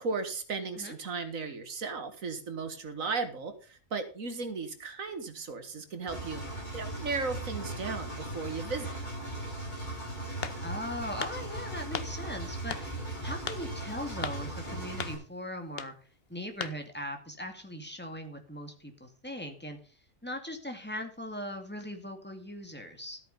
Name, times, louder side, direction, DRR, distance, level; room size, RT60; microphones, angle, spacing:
voice 1, 0.0-6.4 6.7-9.0, right 4 dB, 85° right, 9 dB, 2.0 m, -36 dB
Engine, 6.1-15.1, right 1 dB, 35° left, 5.3 m, -38 dB
sound 1, 10.4-10.8 11.2-11.4 11.9-12.1 12.7-12.9 13.5-13.6 14.2-14.4 15.0-15.2 15.7-15.9 16.6-16.8, left 7 dB, 50° left, 1.1 m, -36 dB
voice 2, 10.6-15.9 16.3-19.8 20.2-23.2, left 1 dB, 10° left, 5 dB, 2.2 m, -39 dB
13.5 x 8.6 x 5.4 m, 0.37 s
omnidirectional pair, 1.4 m